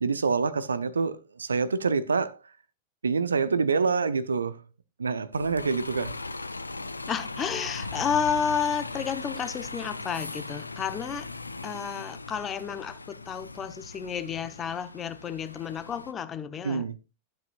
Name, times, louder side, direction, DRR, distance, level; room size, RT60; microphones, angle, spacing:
voice 1, 0.0-2.4 3.0-4.6 5.0-6.1 16.6-17.0, right 5 dB, 75° right, 0.6 m, -26 dB
Bus, 5.3-16.1, left 3 dB, 80° left, 0.5 m, -39 dB
voice 2, 7.1-11.3 11.6-16.9, left 7 dB, 25° left, 0.9 m, -31 dB
12.0 x 8.1 x 2.4 m
figure-of-eight pair, 90°, 0 cm